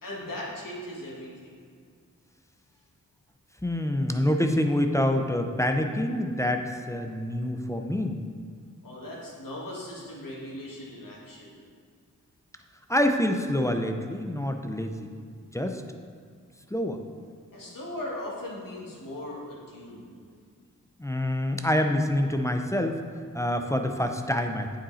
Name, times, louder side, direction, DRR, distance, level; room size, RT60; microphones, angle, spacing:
voice 1, 0.0-1.5 8.8-11.6 17.5-20.1, left 1 dB, 75° left, -5 dB, 2.1 m, -38 dB
voice 2, 3.6-8.2 12.9-15.1 15.5-15.8 16.7-17.0 21.0-23.0 23.3-24.7, left 1 dB, 10° left, 5 dB, 0.6 m, -26 dB
8.5 x 5.6 x 4.2 m, 2.1 s
cardioid pair, 55°, 33 cm